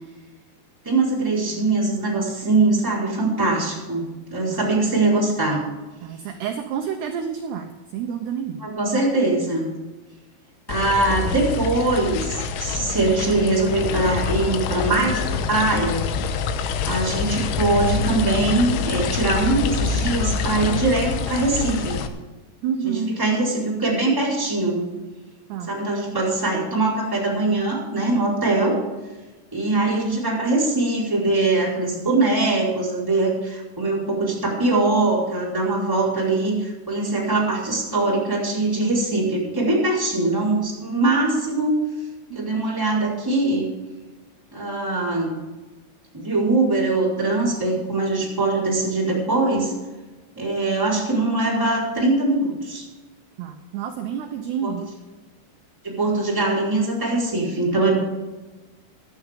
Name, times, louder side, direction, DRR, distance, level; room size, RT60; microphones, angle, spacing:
voice 1, 0.8-4.0 4.3-5.6 8.6-9.7 10.7-16.0 16.8-22.0 22.8-24.9 25.7-28.8 29.5-41.8 42.3-43.7 44.5-45.3 46.1-49.7 50.4-52.9 54.6-54.7 55.8-58.0, right 2 dB, 5° right, -5 dB, 3.9 m, -22 dB
voice 2, 6.0-8.6 22.6-23.2 25.5-25.7 42.3-42.5 53.4-54.9, right 7 dB, 75° right, 4 dB, 2.5 m, -29 dB
sound 1, 10.7-22.1, left 5 dB, 90° left, 3.7 m, -26 dB
17.5 x 11.5 x 3.7 m, 1.2 s
omnidirectional pair, 5.8 m